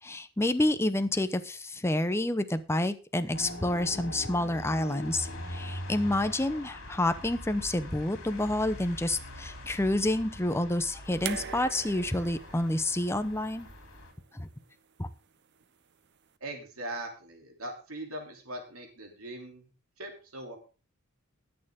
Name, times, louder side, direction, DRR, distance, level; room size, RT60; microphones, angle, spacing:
voice 1, 0.0-13.7 14.3-14.5 15.0-15.1, left 1 dB, 10° left, 10 dB, 0.8 m, -29 dB
sound 1, 3.3-14.1, left 1 dB, 70° left, 3.3 m, -42 dB
sound 2, 11.2-14.4 15.6-15.7, right 8 dB, 55° right, 0.7 m, -42 dB
voice 2, 16.4-19.7 20.0-20.6, right 1 dB, 85° right, 3 dB, 2.9 m, -40 dB
20.0 x 6.8 x 3.6 m, 0.34 s
head